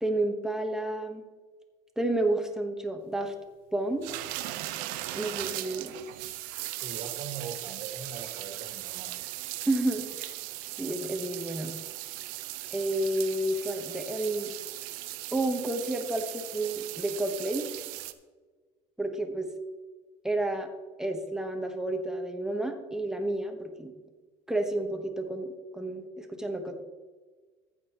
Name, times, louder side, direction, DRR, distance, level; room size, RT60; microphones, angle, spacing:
voice 1, 0.0-1.3 2.0-3.3 3.7-4.1 5.1-5.9 9.7-10.3 10.8-11.7 12.7-14.5 15.3-17.6 19.0-19.5 20.2-20.7 21.0-23.9 24.5-26.8, right 1 dB, 5° right, 4 dB, 1.2 m, -30 dB
sound 1, 4.0-18.1, right 16 dB, 75° right, 0.8 m, -38 dB
voice 2, 6.8-9.3, right 6 dB, 55° right, 3 dB, 1.8 m, -41 dB
14.5 x 8.4 x 3.0 m, 1.4 s
cardioid pair, 135°, 14 cm